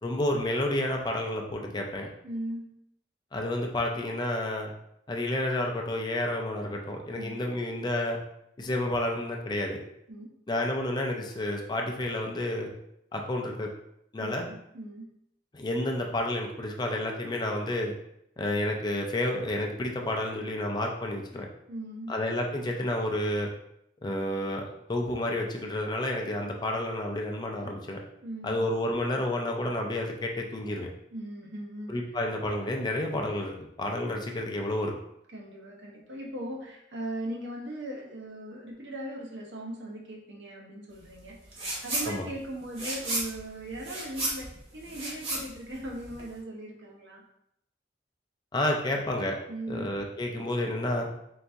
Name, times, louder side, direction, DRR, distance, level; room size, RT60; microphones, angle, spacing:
voice 1, 0.0-2.1 3.3-4.7 5.1-8.2 8.6-9.8 10.5-12.7 13.1-13.7 14.1-14.5 15.5-17.9 18.4-21.5 22.1-23.5 24.0-24.6 24.9-28.0 28.4-30.9 31.9-34.9 42.1-42.3 48.5-49.4 49.7-51.1, left 1 dB, 25° left, 1 dB, 0.4 m, -30 dB
voice 2, 2.2-2.7 7.1-7.4 10.1-10.3 14.2-15.1 21.7-22.1 28.2-28.7 31.1-31.9 35.3-41.6 41.8-47.2 49.5-49.9, right 1 dB, 75° right, -1 dB, 0.9 m, -39 dB
sound 1, 41.5-42.1 42.4-46.4, right 1 dB, 35° right, 1.0 m, -33 dB
3.9 x 2.6 x 3.4 m, 0.77 s
head